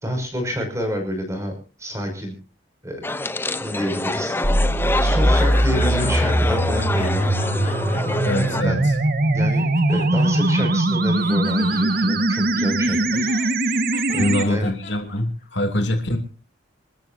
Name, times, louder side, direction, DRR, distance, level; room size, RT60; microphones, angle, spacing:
voice 1, 0.0-2.4 2.8-3.1 3.6-4.7 5.0-7.3 8.4-8.9 9.3-13.3 14.1-14.7, equal, 15° right, 4 dB, 6.0 m, -28 dB
sound 1, 3.0-8.6, left 2 dB, 10° left, 0.6 m, -26 dB
sound 2, 4.4-14.4, right 1 dB, 45° right, 1.5 m, -21 dB
sound 3, 5.3-6.6 6.9-9.1 9.5-10.8 11.2-15.4, left 4 dB, 40° left, 2.8 m, -39 dB
voice 2, 8.2-8.9 14.2-16.2, left 1 dB, 55° left, 6 dB, 2.7 m, -24 dB
27.5 x 13.5 x 2.7 m, 0.34 s
head